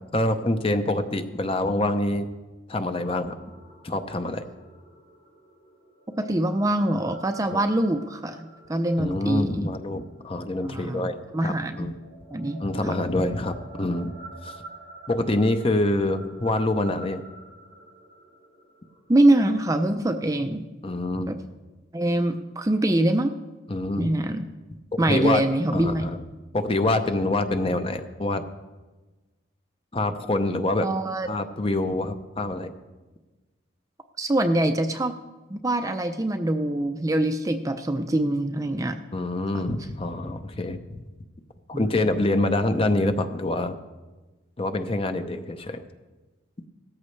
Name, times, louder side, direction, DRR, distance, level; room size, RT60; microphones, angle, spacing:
voice 1, 0.1-2.3 2.7-3.4 3.8-4.4 7.5-7.6 9.0-11.9 12.6-14.1 14.4-14.6 15.1-17.2 20.8-21.3 23.7-24.1 25.0-25.4 25.7-26.2 26.5-28.4 29.9-30.9 31.3-32.7 39.1-40.8 41.7-43.8 44.6-45.8, left 2 dB, 30° left, 8 dB, 0.7 m, -26 dB
sound 1, 2.9-19.5, right 2 dB, 85° left, 4.8 m, -48 dB
voice 2, 6.1-9.7 10.6-11.1 11.3-11.9 12.3-12.9 19.1-20.7 21.3-21.4 21.9-23.3 24.0-24.4 25.0-26.1 30.8-31.3 34.2-35.2 35.5-39.0 41.7-41.9, right 1 dB, 15° right, 7 dB, 0.5 m, -24 dB
17.0 x 13.5 x 3.2 m, 1.2 s
head